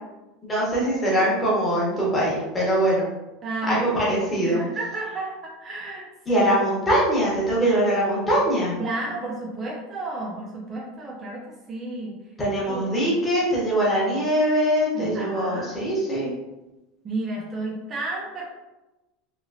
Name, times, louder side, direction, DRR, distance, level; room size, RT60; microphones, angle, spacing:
voice 1, 0.4-3.1 3.7-4.6 6.3-8.8 12.4-16.3, right 1 dB, 10° left, -6 dB, 0.9 m, -22 dB
voice 2, 3.4-6.5 8.8-12.2 12.7-12.8 14.9-15.7 17.0-18.4, right 2 dB, 20° right, -4 dB, 0.5 m, -32 dB
3.1 x 2.8 x 2.6 m, 1.0 s
supercardioid pair, 175°, 0 cm